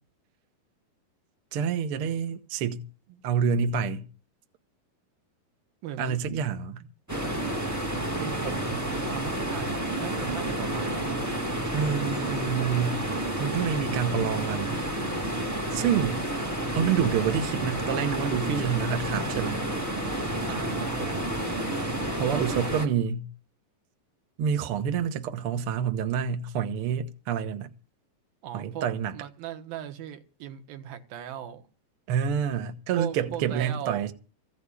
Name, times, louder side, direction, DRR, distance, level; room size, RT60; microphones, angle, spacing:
voice 1, 1.5-2.8 3.2-4.0 6.0-6.8 11.7-13.0 13.4-14.8 15.7-16.2 16.7-19.6 22.2-23.3 24.4-27.7 28.5-29.1 32.1-34.1, right 7 dB, 65° right, 1.4 m, -27 dB
voice 2, 5.8-6.2 6.8-6.9 8.2-11.2 20.4-21.3 28.4-31.7 33.0-34.1, right 10 dB, 85° right, 3.1 m, -38 dB
sound 1, 7.1-22.9, right 1 dB, 25° right, 0.3 m, -30 dB
15.5 x 6.6 x 9.8 m
omnidirectional pair, 4.1 m